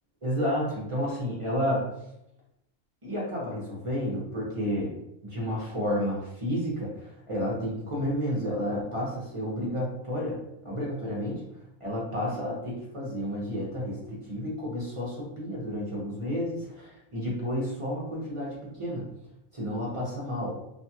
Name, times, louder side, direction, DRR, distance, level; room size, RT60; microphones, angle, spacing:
voice 1, 0.2-1.9 3.0-5.0 5.2-11.4 11.8-19.1 19.5-20.6, equal, 35° right, -5 dB, 0.5 m, -31 dB
2.6 x 2.3 x 2.7 m, 0.82 s
omnidirectional pair, 1.3 m